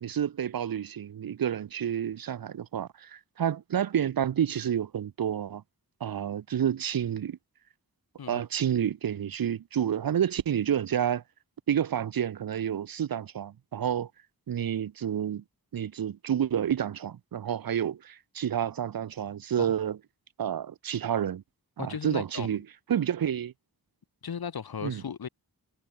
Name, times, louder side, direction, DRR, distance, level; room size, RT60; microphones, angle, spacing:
voice 1, 0.0-5.6 6.0-7.4 8.3-11.2 11.7-14.1 14.5-15.4 15.7-20.0 20.4-21.4 21.8-22.6 22.9-23.5 24.8-25.0, right 9 dB, 60° right, 0.6 m, -29 dB
voice 2, 21.8-22.6 24.2-25.3, left 7 dB, 70° left, 1.3 m, -36 dB
wide cardioid pair, 70°, 39 cm